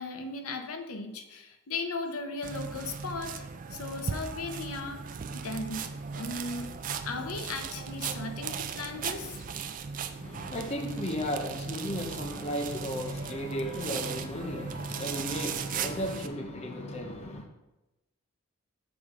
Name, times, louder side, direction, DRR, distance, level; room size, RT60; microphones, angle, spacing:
voice 1, 0.0-3.4 3.7-6.7 7.0-9.5, left 3 dB, 80° left, 0.7 m, -37 dB
sound 1, 2.4-16.3, right 6 dB, 40° right, 0.3 m, -37 dB
voice 2, 10.2-17.5, equal, 30° left, 0.6 m, -35 dB
7.1 x 5.0 x 3.6 m
head